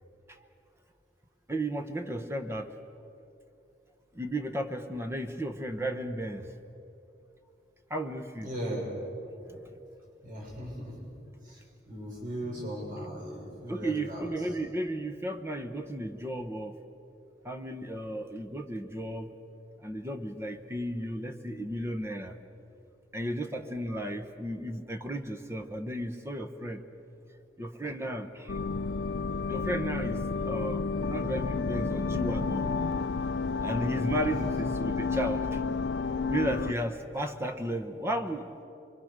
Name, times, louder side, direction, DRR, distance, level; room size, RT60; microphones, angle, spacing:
voice 1, 1.5-2.7 4.1-6.5 7.9-8.5 9.5-9.7 13.7-16.8 17.4-19.3 19.8-22.3 23.1-26.8 27.6-28.6 29.5-32.7 33.6-35.6 36.3-38.6, right 1 dB, 15° right, 7 dB, 1.0 m, -34 dB
voice 2, 8.4-8.9 10.2-11.1 11.4-11.6 11.9-14.3 34.4-34.5, right 1 dB, 50° right, -4 dB, 6.8 m, -37 dB
sound 1, 28.5-36.7, left 4 dB, 80° left, 0.6 m, -31 dB
26.0 x 24.0 x 6.7 m, 2.7 s
head